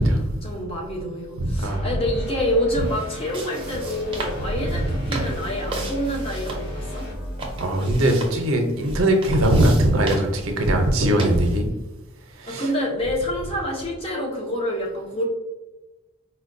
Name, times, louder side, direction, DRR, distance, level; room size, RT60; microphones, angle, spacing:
voice 1, 0.4-7.1 12.5-15.2, left 1 dB, 25° left, -1 dB, 0.7 m, -27 dB
voice 2, 1.4-1.8 7.6-11.7 12.4-12.6, right 1 dB, 75° right, 4 dB, 0.6 m, -20 dB
sound 1, 1.6-8.1, equal, 55° left, 1.2 m, -35 dB
sound 2, 2.7-11.6, right 2 dB, 25° right, 0.6 m, -36 dB
4.2 x 2.2 x 2.5 m, 1.1 s
head